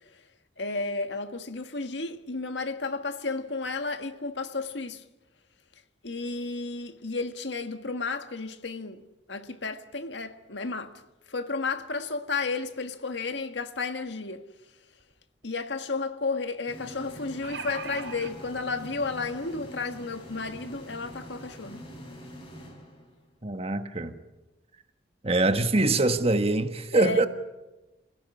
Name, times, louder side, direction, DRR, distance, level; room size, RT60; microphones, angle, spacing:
voice 1, 0.6-5.0 6.0-9.0 9.3-10.9 11.3-14.4 15.4-21.9 26.9-27.3, left 3 dB, 85° left, 1.6 m, -32 dB
sound 1, 15.0-15.1 15.4-15.5 17.1-18.3 19.2-19.3 19.7-19.8, right 5 dB, 85° right, 4.0 m, -38 dB
sound 2, 16.7-23.4, equal, 30° left, 5.3 m, -45 dB
voice 2, 23.4-24.2 25.2-27.3, right 2 dB, 35° right, 1.5 m, -24 dB
28.0 x 16.5 x 9.8 m
head